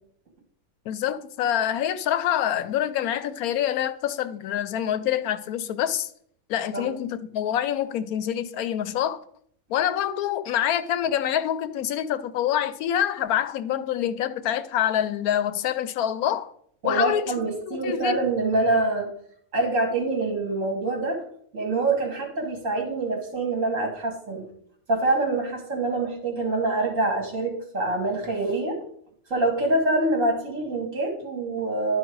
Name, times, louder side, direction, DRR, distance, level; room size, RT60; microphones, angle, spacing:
voice 1, 0.9-6.1 6.5-9.2 9.7-16.5 16.8-17.3 17.7-18.2, left 10 dB, 85° left, 1.1 m, -26 dB
voice 2, 16.8-19.1 19.5-21.2 21.5-24.5 24.9-28.8 29.3-32.0, right 2 dB, 60° right, 2.5 m, -25 dB
11.0 x 4.6 x 4.6 m
omnidirectional pair, 1.5 m